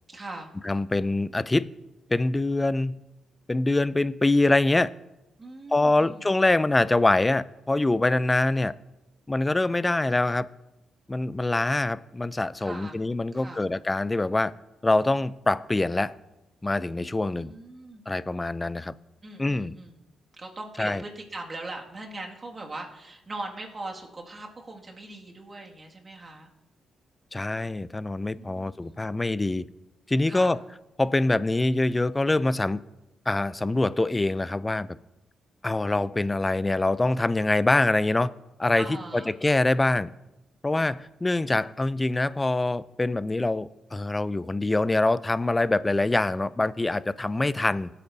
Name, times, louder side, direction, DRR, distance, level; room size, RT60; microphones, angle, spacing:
voice 1, 0.1-0.5 5.4-6.2 12.6-13.0 13.3-13.7 17.0-18.0 19.2-19.9 20.3-26.5 28.3-29.0 30.2-30.5 38.7-39.3, right 2 dB, 35° right, 2.1 m, -40 dB
voice 2, 0.6-1.7 2.1-3.0 3.5-4.9 5.7-8.7 9.3-10.5 11.1-14.5 14.8-16.2 16.6-17.5 18.1-18.9 19.4-19.7 20.8-21.0 27.3-29.6 30.1-30.6 31.0-32.8 33.3-34.9 35.6-38.3 38.6-38.9 39.1-40.1 40.6-47.9, left 2 dB, 20° left, 0.4 m, -24 dB
16.5 x 8.4 x 2.7 m
supercardioid pair, 55°, 0 cm